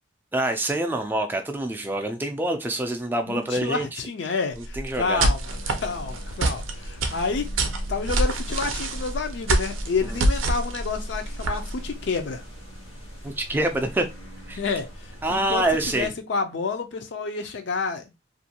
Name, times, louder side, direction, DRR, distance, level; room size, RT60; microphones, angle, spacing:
voice 1, 0.3-4.0 4.6-5.2 10.0-10.1 13.2-14.1 14.5-14.6 15.2-16.1, right 1 dB, 10° right, 0.3 m, -26 dB
voice 2, 3.3-7.5 7.9-12.4 14.6-14.9 15.3-18.0, left 4 dB, 60° left, 0.4 m, -29 dB
sound 1, 4.6-11.9, right 2 dB, 85° right, 0.5 m, -26 dB
sound 2, 5.5-16.1, equal, 85° left, 1.1 m, -40 dB
2.5 x 2.2 x 2.8 m
head